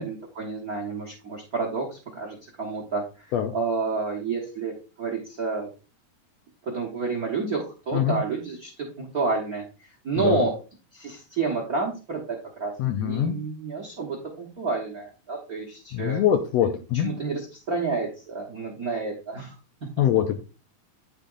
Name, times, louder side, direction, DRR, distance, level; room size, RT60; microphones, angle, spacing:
voice 1, 0.0-3.3 3.5-5.7 6.6-10.6 10.9-16.2 16.6-19.5 19.8-20.0, right 4 dB, 55° right, 1 dB, 1.0 m, -30 dB
voice 2, 10.2-10.5 12.8-13.3 15.9-17.1 20.0-20.4, left 10 dB, 80° left, 5 dB, 1.6 m, -23 dB
9.9 x 3.6 x 3.8 m, 0.33 s
omnidirectional pair, 3.5 m